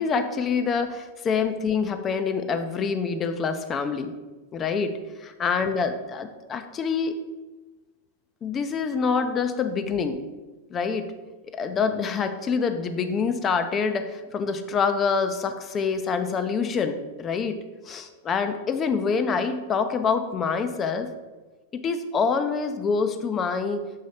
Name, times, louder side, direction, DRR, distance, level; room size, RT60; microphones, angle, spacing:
voice 1, 0.0-4.1 4.5-4.9 5.2-7.1 8.4-10.2 10.7-11.1 11.5-17.6 17.8-21.1 21.7-23.8, left 5 dB, 25° left, 9 dB, 0.6 m, -26 dB
6.5 x 3.1 x 5.6 m, 1.2 s
hypercardioid pair, 125°, 0 cm